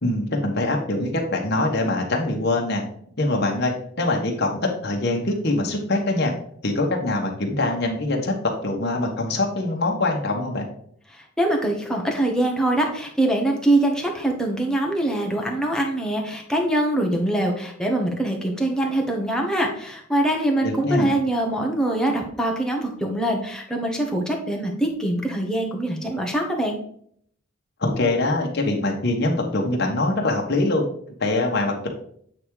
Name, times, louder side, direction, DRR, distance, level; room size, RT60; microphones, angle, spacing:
voice 1, 0.0-2.8 3.2-6.3 6.6-8.3 8.6-10.7 20.6-21.1 27.8-30.8 31.2-31.9, left 2 dB, 55° left, 1 dB, 1.4 m, -23 dB
voice 2, 11.1-26.8, right 1 dB, 5° left, 0 dB, 1.3 m, -23 dB
8.3 x 3.6 x 4.8 m, 0.63 s
head